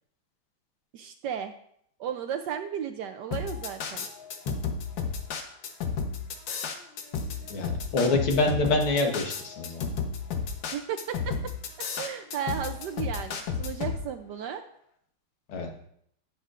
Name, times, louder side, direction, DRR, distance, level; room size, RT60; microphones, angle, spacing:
voice 1, 0.9-1.5 2.0-4.1 10.7-11.4 12.0-14.6, right 8 dB, 75° right, 7 dB, 1.0 m, -34 dB
sound 1, 3.3-14.0, left 5 dB, 65° left, 1.7 m, -32 dB
voice 2, 7.5-9.9 15.5-15.7, left 2 dB, 85° left, 2 dB, 2.2 m, -26 dB
12.0 x 9.4 x 2.5 m, 0.68 s
omnidirectional pair, 2.3 m